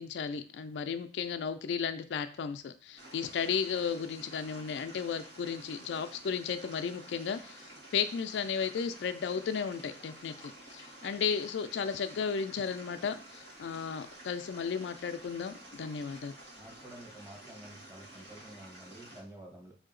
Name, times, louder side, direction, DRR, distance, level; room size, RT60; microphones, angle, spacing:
voice 1, 0.0-7.7 7.9-16.3, left 6 dB, 80° left, 9 dB, 0.4 m, -34 dB
sound 1, 3.0-19.2, right 1 dB, 85° right, 1.4 m, -51 dB
voice 2, 16.6-19.7, right 1 dB, 15° right, -1 dB, 1.0 m, -50 dB
4.8 x 2.8 x 3.8 m, 0.39 s
head